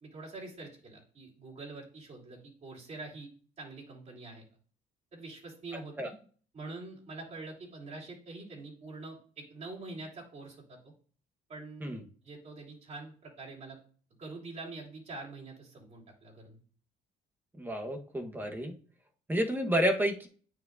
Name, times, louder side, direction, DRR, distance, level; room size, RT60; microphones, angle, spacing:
voice 1, 0.0-3.3 3.6-4.4 5.1-6.1 6.5-10.8 11.5-11.9 12.2-13.8 14.2-16.6, right 3 dB, 40° right, -2 dB, 3.1 m, -45 dB
voice 2, 17.5-18.7 19.3-20.3, equal, 10° right, 3 dB, 1.2 m, -30 dB
9.2 x 4.7 x 2.6 m, 0.44 s
cardioid pair, 110°, 17 cm